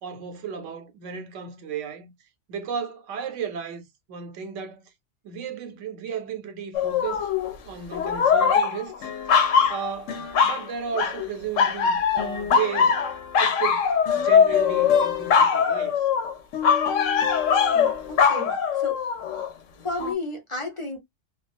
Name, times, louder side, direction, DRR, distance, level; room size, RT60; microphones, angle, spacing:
voice 1, 0.0-2.1 2.5-4.9 5.2-7.3 7.7-9.1 9.7-10.2 10.4-12.9 13.4-16.1, right 7 dB, 80° right, 1.0 m, -34 dB
sound 1, 6.7-7.5 7.9-10.6 10.9-11.3 11.6-19.5 20.0-20.1, left 6 dB, 90° left, 0.9 m, -22 dB
voice 2, 17.7-19.0 19.8-21.0, left 2 dB, 35° left, 0.5 m, -33 dB
2.3 x 2.3 x 2.4 m
omnidirectional pair, 1.3 m